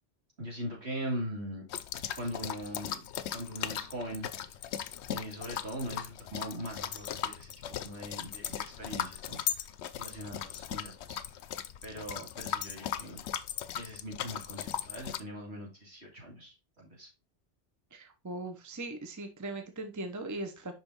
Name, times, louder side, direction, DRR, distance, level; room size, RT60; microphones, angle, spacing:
voice 1, 0.4-1.6 2.0-3.0 3.3-4.3 5.1-9.7 10.0-11.2 11.8-13.2 13.8-17.1, equal, 65° right, -2 dB, 2.9 m, -41 dB
sound 1, 1.7-15.2, left 10 dB, 75° left, 0.8 m, -38 dB
voice 2, 17.9-20.7, right 2 dB, 15° right, 5 dB, 0.8 m, -39 dB
5.7 x 5.2 x 3.9 m, 0.27 s
omnidirectional pair, 1.2 m